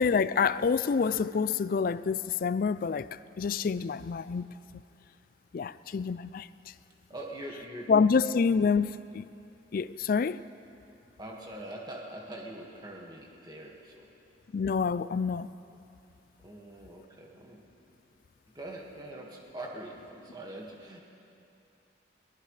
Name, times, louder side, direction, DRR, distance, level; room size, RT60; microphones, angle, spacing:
voice 1, 0.0-3.1 3.4-4.5 5.5-6.5 7.9-9.3 9.7-10.4 14.5-15.5, left 5 dB, 50° left, 0.3 m, -27 dB
voice 2, 7.1-7.9 11.2-14.1 16.4-17.6 18.5-21.0, right 1 dB, 20° right, 1.8 m, -43 dB
22.5 x 18.5 x 3.3 m
head